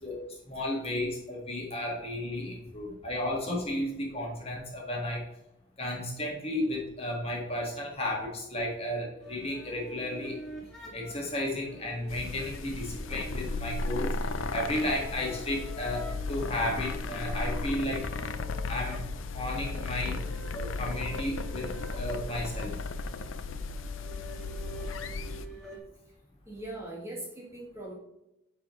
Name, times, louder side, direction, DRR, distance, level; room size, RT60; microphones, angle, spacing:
voice 1, 0.0-5.3 5.8-10.4 10.9-14.1 14.5-18.1 18.7-19.0 19.3-20.2 20.5-22.7, left 1 dB, 30° left, -2 dB, 1.8 m, -33 dB
sound 1, 9.2-25.8, right 1 dB, 5° left, 2.1 m, -46 dB
sound 2, 12.1-25.5, left 3 dB, 85° left, 0.5 m, -35 dB
voice 2, 26.5-27.9, right 1 dB, 15° right, -3 dB, 1.5 m, -42 dB
9.5 x 4.9 x 3.2 m, 0.85 s
head